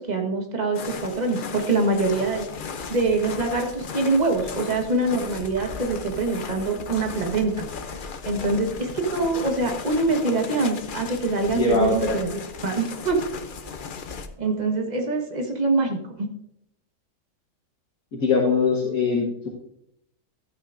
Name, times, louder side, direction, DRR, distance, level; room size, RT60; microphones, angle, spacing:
voice 1, 0.1-2.4 2.9-8.0 8.2-13.2 14.4-16.3, right 3 dB, 25° right, 3 dB, 1.3 m, -24 dB
sound 1, 0.7-14.3, left 5 dB, 80° left, 0.4 m, -36 dB
voice 2, 11.5-12.2 18.1-19.5, left 4 dB, 55° left, -1 dB, 1.6 m, -22 dB
13.0 x 8.4 x 2.6 m, 0.78 s
omnidirectional pair, 1.8 m